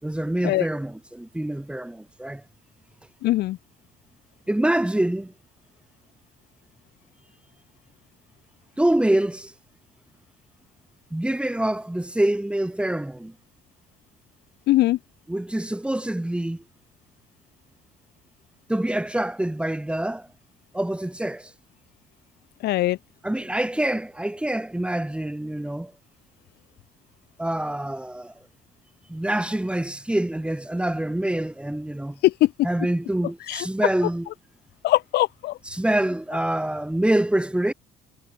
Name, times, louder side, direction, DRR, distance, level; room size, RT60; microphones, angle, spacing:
voice 1, 0.0-2.4 4.5-5.3 8.8-9.5 11.1-13.3 15.3-16.6 18.7-20.3 20.7-21.5 23.2-25.9 27.4-28.3 29.1-32.2 32.6-34.3 35.6-37.7, right 1 dB, 5° right, 6.1 m, -25 dB
voice 2, 3.2-3.6 14.7-15.0 22.6-23.0 32.2-32.5 33.5-33.7 34.8-35.5, left 16 dB, 80° left, 3.5 m, -21 dB
cardioid pair, 110°, 17 cm